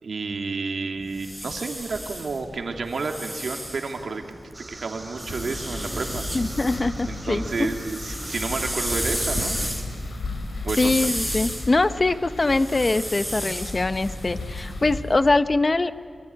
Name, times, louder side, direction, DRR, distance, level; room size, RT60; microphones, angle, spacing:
voice 1, 0.0-4.2 4.7-6.3 7.1-9.6 10.6-10.9, right 4 dB, 80° right, 4 dB, 2.5 m, -30 dB
sound 1, 1.0-4.5 5.2-6.8 7.2-15.1, right 1 dB, ahead, 4.3 m, -33 dB
sound 2, 4.5-9.7, right 2 dB, 30° right, 1.5 m, -38 dB
sound 3, 5.3-15.0, left 2 dB, 90° left, 5.1 m, -35 dB
voice 2, 6.3-7.7 10.8-15.9, left 2 dB, 40° left, 12 dB, 0.9 m, -23 dB
24.5 x 23.5 x 9.9 m, 2.2 s
wide cardioid pair, 85°, 0 cm